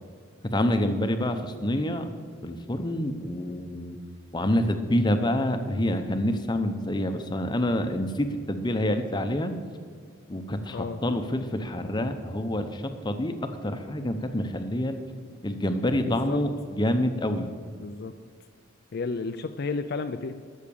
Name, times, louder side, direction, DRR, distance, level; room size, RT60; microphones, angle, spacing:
voice 1, 0.5-2.0 2.4-3.9 4.3-9.5 10.3-13.3 13.6-15.0 15.4-17.5, left 1 dB, 20° left, 7 dB, 0.8 m, -27 dB
voice 2, 15.9-16.4 17.8-18.1 18.9-20.4, left 4 dB, 50° left, 8 dB, 0.4 m, -32 dB
13.5 x 6.5 x 7.0 m, 2.1 s
head